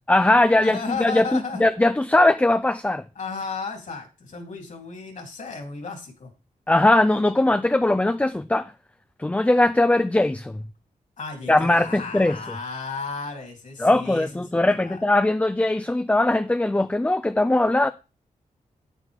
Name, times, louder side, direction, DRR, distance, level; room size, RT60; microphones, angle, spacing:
voice 1, 0.1-3.0 6.7-8.7 9.2-10.6 11.5-12.4 13.8-17.9, left 2 dB, 10° left, 0.4 m, -20 dB
voice 2, 0.6-1.6 3.1-6.3 11.2-14.3 14.5-15.0, left 4 dB, 65° left, 3.3 m, -34 dB
9.0 x 9.0 x 3.6 m
cardioid pair, 75°, 14 cm